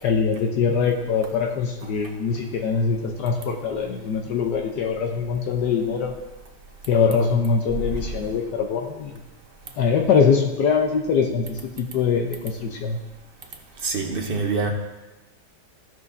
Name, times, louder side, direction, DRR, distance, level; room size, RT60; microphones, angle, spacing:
voice 1, 0.0-6.1 6.9-9.1 9.8-13.0, left 5 dB, 80° left, 2 dB, 1.4 m, -23 dB
voice 2, 13.8-14.7, right 4 dB, 45° right, 3 dB, 0.8 m, -25 dB
15.0 x 6.1 x 2.7 m, 1.1 s
omnidirectional pair, 1.8 m